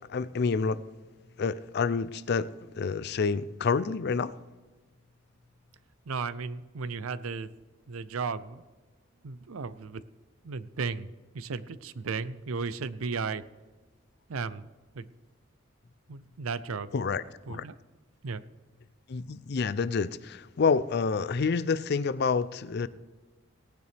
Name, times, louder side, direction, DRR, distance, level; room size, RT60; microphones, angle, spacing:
voice 1, 0.1-0.8 1.4-2.5 2.7-4.3 16.9-17.2 17.5-17.6 19.1-22.9, left 5 dB, 50° left, 16 dB, 0.4 m, -28 dB
voice 2, 6.0-7.5 7.9-8.6 9.2-10.0 10.4-13.4 14.3-14.7 14.9-15.1 16.1-16.9 17.5-17.7 18.2-18.4, right 4 dB, 85° right, 15 dB, 0.6 m, -35 dB
18.0 x 9.4 x 3.4 m, 1.3 s
head